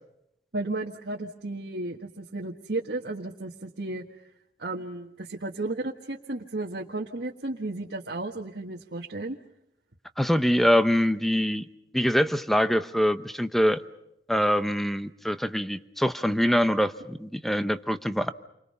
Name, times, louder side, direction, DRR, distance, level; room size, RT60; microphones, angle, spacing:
voice 1, 0.5-4.0 4.6-9.4, right 2 dB, 70° right, -2 dB, 1.6 m, -33 dB
voice 2, 10.2-11.7 11.9-13.8 14.3-18.3, equal, ahead, 11 dB, 0.9 m, -24 dB
29.5 x 24.5 x 5.5 m, 0.82 s
head